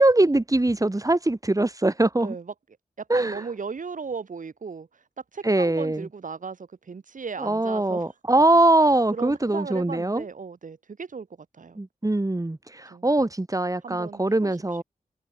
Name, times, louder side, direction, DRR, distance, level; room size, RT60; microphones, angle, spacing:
voice 1, 0.0-2.4 3.1-3.4 5.4-6.1 7.4-10.2 11.8-14.8, right 2 dB, 25° right, 4.2 m, -22 dB
voice 2, 2.2-2.5 3.0-5.0 5.3-8.1 9.1-11.8 12.9-13.1 13.8-14.6, right 5 dB, 70° right, 5.3 m, -36 dB
cardioid pair, 40°, 14 cm